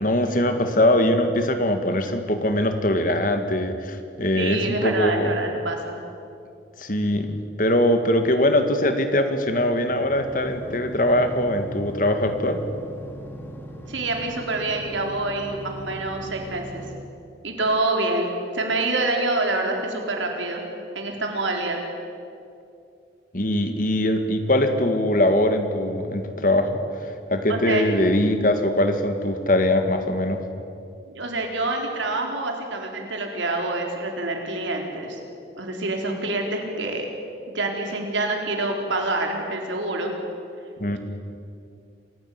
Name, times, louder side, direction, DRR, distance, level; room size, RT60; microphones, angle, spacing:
voice 1, 0.0-5.4 6.8-12.6 23.3-26.8 27.3-30.5 40.8-41.0, left 1 dB, 45° left, 7 dB, 2.0 m, -22 dB
voice 2, 4.3-6.0 13.9-16.8 17.4-20.6 20.9-21.8 27.5-27.8 31.1-35.2 35.6-37.1 37.5-40.1 40.9-41.0, right 2 dB, 85° right, 2 dB, 4.4 m, -26 dB
sound 1, 10.0-16.9, equal, 10° left, 2.4 m, -40 dB
27.5 x 16.5 x 9.7 m, 2.5 s
head